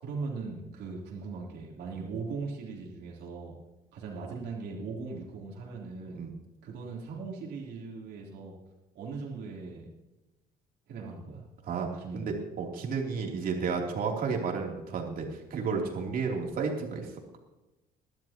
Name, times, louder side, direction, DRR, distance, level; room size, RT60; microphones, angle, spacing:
voice 1, 0.0-3.6 3.9-6.2 6.6-8.5 8.9-9.9 10.9-11.4 12.0-12.3, right 4 dB, 75° right, -3 dB, 3.6 m, -39 dB
voice 2, 12.1-17.1, right 5 dB, 60° right, 0 dB, 3.3 m, -32 dB
21.0 x 12.0 x 3.0 m, 1.0 s
cardioid pair, 110°, 17 cm